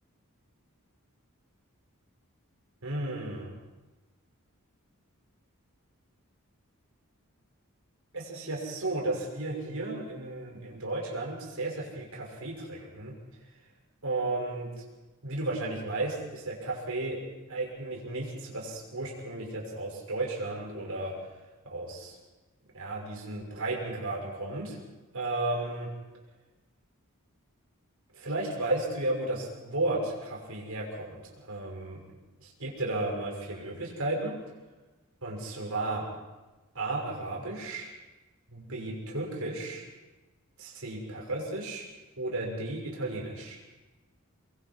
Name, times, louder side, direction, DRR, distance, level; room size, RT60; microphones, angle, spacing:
voice 1, 2.8-3.5 8.1-13.1 14.0-14.7 15.2-17.2 17.5-21.1 21.6-22.1 22.7-24.8 25.1-25.9 28.1-32.0 32.4-34.4 35.2-36.1 36.7-37.9 38.5-39.8 40.6-41.8 42.2-43.6, right 2 dB, 75° right, -1 dB, 6.3 m, -34 dB
24.5 x 23.0 x 4.8 m, 1.1 s
head